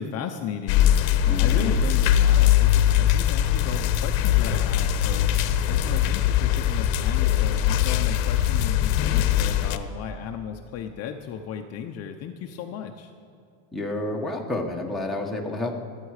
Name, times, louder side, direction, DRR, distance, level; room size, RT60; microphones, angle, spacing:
voice 1, 0.0-13.1, left 8 dB, 40° left, 4 dB, 0.8 m, -35 dB
sound 1, 0.7-9.8, left 11 dB, 90° left, 1.0 m, -21 dB
voice 2, 1.2-1.7 13.7-15.7, left 2 dB, ahead, -2 dB, 1.3 m, -30 dB
27.0 x 9.2 x 4.9 m, 2.5 s
cardioid pair, 160°, 40 cm